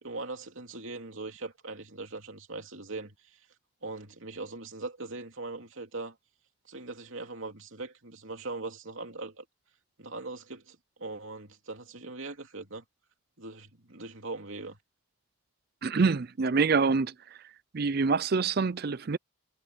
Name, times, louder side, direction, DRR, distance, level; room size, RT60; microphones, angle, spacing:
voice 1, 0.0-3.4 3.8-6.2 6.7-9.4 10.0-12.8 13.4-14.8, right 3 dB, 65° right, 2.9 m, -40 dB
voice 2, 15.8-17.1 17.7-19.2, right 4 dB, 45° right, 0.5 m, -26 dB
head